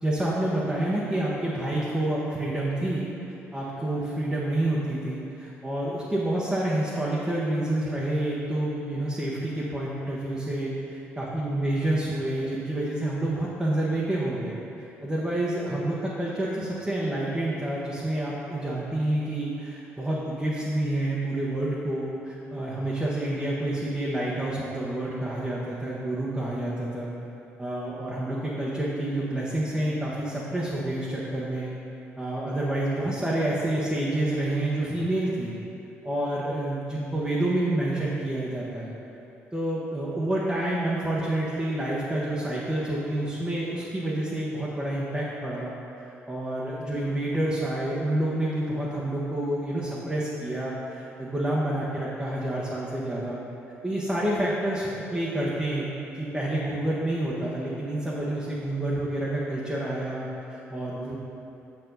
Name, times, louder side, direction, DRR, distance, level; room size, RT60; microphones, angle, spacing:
voice 1, 0.0-3.1 3.5-10.7 11.2-27.1 27.6-31.7 32.2-35.6 36.0-38.9 39.5-45.7 46.3-53.4 53.8-55.9 56.1-61.2, right 1 dB, 10° right, -7 dB, 1.2 m, -28 dB
7.4 x 4.8 x 4.0 m, 2.8 s
hypercardioid pair, 50°, 6 cm